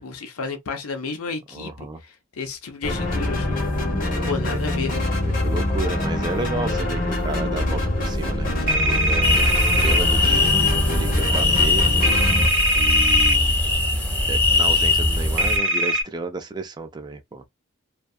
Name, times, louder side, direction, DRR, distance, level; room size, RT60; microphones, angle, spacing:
voice 1, 0.0-3.8 4.3-4.9, left 4 dB, 90° left, 0.6 m, -32 dB
voice 2, 1.5-2.0 4.1-4.6 5.2-11.9 12.7-13.6 14.3-17.4, right 3 dB, 20° right, 0.3 m, -32 dB
sound 1, 2.8-12.5, left 1 dB, 40° left, 0.7 m, -24 dB
sound 2, 8.7-10.0 12.0-13.3 15.4-16.0, right 1 dB, 60° right, 0.8 m, -22 dB
sound 3, 9.2-15.6, left 3 dB, 5° left, 0.7 m, -21 dB
2.6 x 2.3 x 2.3 m
head